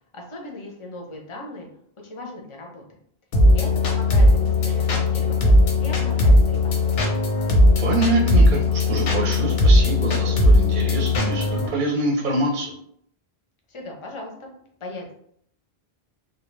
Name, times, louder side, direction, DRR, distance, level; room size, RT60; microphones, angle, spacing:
voice 1, 0.1-1.7 2.0-2.8 3.5-5.5 5.8-7.0 13.7-14.5 14.8-15.1, left 2 dB, 40° left, 0 dB, 0.5 m, -38 dB
sound 1, 3.3-11.7, left 1 dB, 85° left, 0.9 m, -18 dB
voice 2, 7.8-12.7, right 2 dB, 60° right, -1 dB, 0.6 m, -25 dB
2.2 x 2.2 x 3.1 m, 0.68 s
omnidirectional pair, 1.0 m